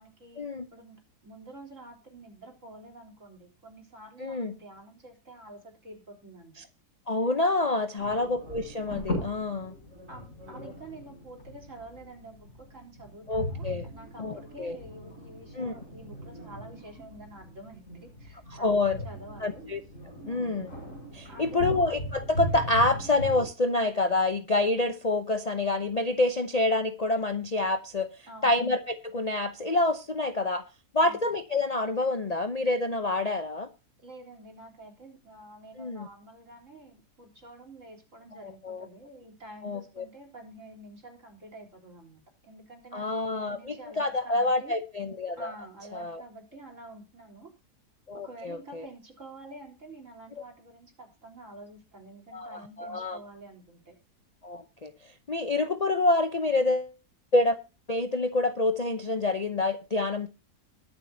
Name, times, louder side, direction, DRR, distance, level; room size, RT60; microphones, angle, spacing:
voice 1, 0.0-0.5 0.7-6.6 8.0-8.3 10.1-19.6 20.2-20.7 21.3-21.8 28.3-28.6 31.0-31.2 34.0-44.8 45.4-47.5 48.1-53.9, right 2 dB, 50° right, 4.3 m, -48 dB
voice 2, 4.2-4.5 7.1-9.7 13.3-13.9 14.2-14.8 15.6-15.7 18.5-19.0 19.4-19.8 20.3-20.7 21.1-28.1 28.4-30.6 30.9-33.7 35.8-36.1 38.4-38.9 39.6-40.0 42.9-45.5 45.9-46.2 48.1-48.8 52.3-53.2 54.4-54.9 55.3-56.9 57.3-57.6 57.9-60.3, left 2 dB, 35° left, 0.7 m, -27 dB
sound 1, 8.0-23.5, equal, 50° left, 7.7 m, -39 dB
22.0 x 7.6 x 2.8 m
omnidirectional pair, 1.7 m